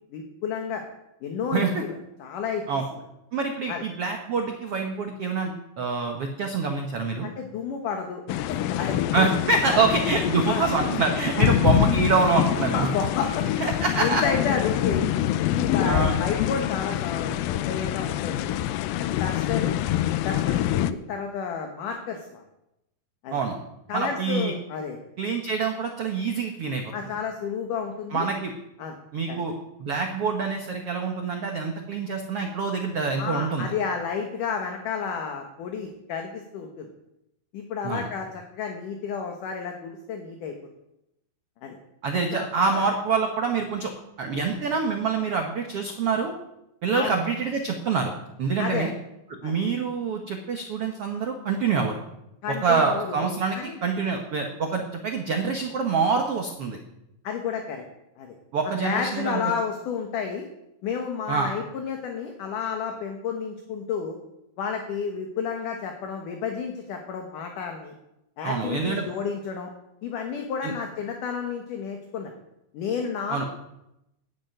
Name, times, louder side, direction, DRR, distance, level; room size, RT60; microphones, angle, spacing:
voice 1, 0.1-0.8 1.2-2.6 3.7-3.8 7.2-9.3 9.7-9.9 10.5-10.6 11.3-11.5 12.6-13.5 14.0-15.1 15.5-18.5 18.9-19.8 20.2-22.4 23.2-23.4 23.9-25.0 26.9-28.3 28.8-29.0 29.3-29.4 33.2-36.9 37.5-40.5 41.6-41.8 42.3-42.8 46.9-47.2 48.6-48.9 49.4-49.6 52.4-53.3 53.5-53.8 57.2-57.8 58.2-58.4 58.6-60.5 60.8-64.2 64.6-67.9 68.4-69.7 70.0-72.4 72.7-73.5, left 6 dB, 60° left, 3 dB, 2.6 m, -31 dB
voice 2, 3.3-7.3 9.1-12.9 13.6-14.2 15.8-16.2 23.3-23.6 23.9-24.5 25.2-27.1 28.1-28.5 29.1-29.5 29.8-33.7 37.8-38.1 42.0-43.9 44.2-46.3 46.8-48.1 48.4-48.9 49.4-52.0 52.6-56.8 58.5-59.4 61.3-61.5 68.4-69.1 70.6-70.7 73.3-73.5, right 4 dB, 80° right, 3 dB, 1.3 m, -26 dB
sound 1, 8.3-20.9, left 12 dB, 85° left, 2.0 m, -25 dB
11.5 x 8.3 x 9.1 m, 0.86 s
omnidirectional pair, 4.7 m